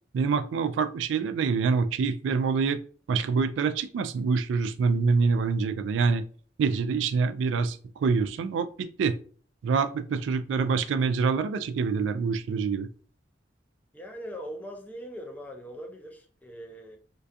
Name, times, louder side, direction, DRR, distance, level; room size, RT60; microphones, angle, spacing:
voice 1, 0.1-2.8 3.1-6.2 6.6-9.2 9.6-12.9, right 5 dB, 85° right, 0.3 m, -26 dB
voice 2, 13.9-17.0, equal, 10° left, 0.4 m, -41 dB
2.3 x 2.2 x 2.6 m
head